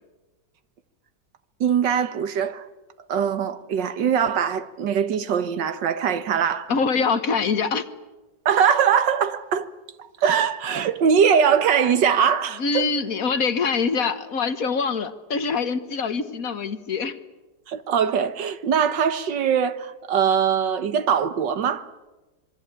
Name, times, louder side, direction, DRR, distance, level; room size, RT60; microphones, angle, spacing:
voice 1, 1.6-2.7 3.1-6.7 8.5-9.7 10.2-12.8 17.7-21.9, right 7 dB, 70° right, 1.9 m, -22 dB
voice 2, 6.7-7.9 12.6-17.2, left 5 dB, 50° left, 1.7 m, -24 dB
25.5 x 22.5 x 9.1 m
omnidirectional pair, 2.0 m